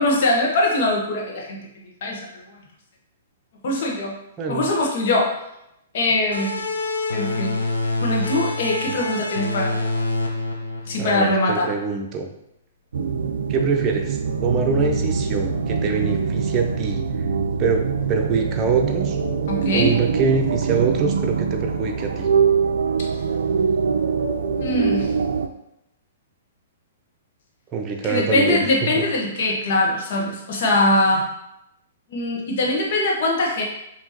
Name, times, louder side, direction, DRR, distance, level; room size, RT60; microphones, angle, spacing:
voice 1, 0.0-1.6 2.0-2.4 3.6-4.1 4.5-5.3 5.9-6.6 7.1-7.6 8.0-9.9 10.9-11.7 19.5-19.9 24.6-25.1 28.0-31.3 32.1-33.6, left 2 dB, 55° left, -1 dB, 1.2 m, -22 dB
sound 1, 6.3-11.6, left 2 dB, 90° left, 0.6 m, -26 dB
voice 2, 11.0-12.3 13.5-17.3 17.6-17.8 18.1-19.2 19.7-22.3 27.7-28.6 28.9-29.1, right 5 dB, 25° right, 2 dB, 0.8 m, -24 dB
sound 2, 12.9-25.5, right 5 dB, 70° right, 0.4 m, -23 dB
5.3 x 2.9 x 3.1 m, 0.84 s
figure-of-eight pair, 115°, 0 cm